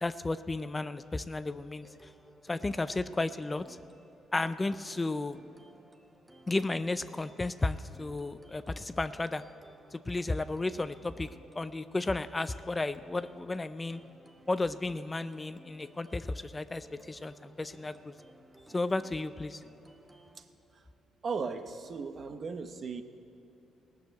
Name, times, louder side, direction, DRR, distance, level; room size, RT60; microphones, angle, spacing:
voice 1, 0.0-2.1 2.4-3.8 4.3-5.4 6.5-9.4 9.9-11.3 11.6-14.0 14.5-18.1 18.7-19.6, left 2 dB, 20° left, 12 dB, 0.4 m, -33 dB
sound 1, 1.8-20.4, right 1 dB, 10° right, 1.0 m, -58 dB
voice 2, 21.2-23.0, right 5 dB, 50° right, 9 dB, 0.8 m, -36 dB
17.5 x 6.5 x 8.0 m, 2.8 s
cardioid pair, 90°, 0 cm